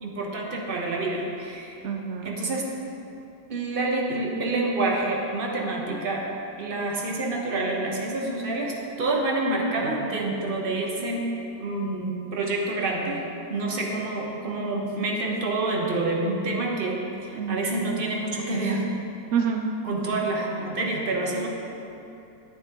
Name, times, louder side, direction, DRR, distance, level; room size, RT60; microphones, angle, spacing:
voice 1, 0.0-1.9 2.2-2.7 3.5-6.3 6.6-11.3 11.6-13.2 13.5-18.9 19.8-21.5, right 2 dB, 40° right, 0 dB, 1.0 m, -27 dB
voice 2, 1.8-2.4 17.3-18.0 19.3-19.6, right 7 dB, 80° right, 2 dB, 0.6 m, -28 dB
9.8 x 9.4 x 3.0 m, 2.8 s
omnidirectional pair, 1.8 m